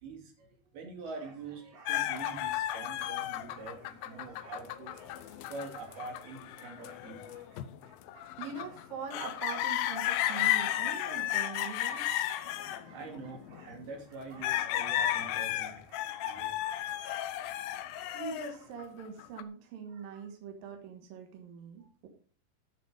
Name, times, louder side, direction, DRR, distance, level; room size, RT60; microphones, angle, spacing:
voice 1, 0.0-4.9 5.5-7.4 12.8-16.7 19.9-20.1, right 4 dB, 90° right, 1 dB, 4.5 m, -45 dB
sound 1, 1.1-18.7, right 2 dB, 45° right, 3.9 m, -58 dB
sound 2, 1.9-13.8 14.4-19.4, left 13 dB, 80° left, 2.4 m, -34 dB
voice 2, 8.4-12.0 18.1-22.1, right 6 dB, 70° right, 3 dB, 3.0 m, -42 dB
13.0 x 6.9 x 5.0 m, 0.43 s
omnidirectional pair, 4.3 m